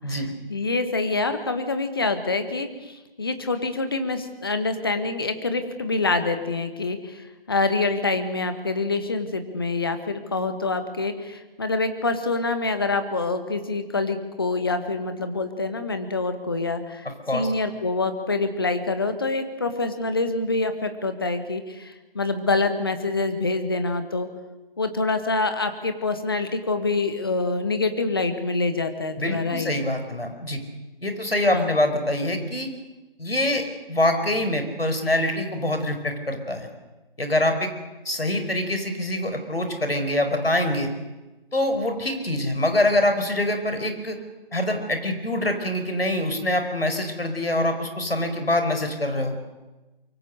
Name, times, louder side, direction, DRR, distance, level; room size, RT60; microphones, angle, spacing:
voice 1, 0.1-24.3 24.8-29.7 31.5-31.8, left 3 dB, 25° left, 8 dB, 1.5 m, -26 dB
voice 2, 29.2-30.6 31.0-32.7 33.2-36.7 37.2-37.7 38.0-40.9 41.5-44.2 44.5-49.4, left 1 dB, 75° left, 7 dB, 4.8 m, -24 dB
25.0 x 23.5 x 6.5 m, 1.1 s
figure-of-eight pair, 165°, 30 cm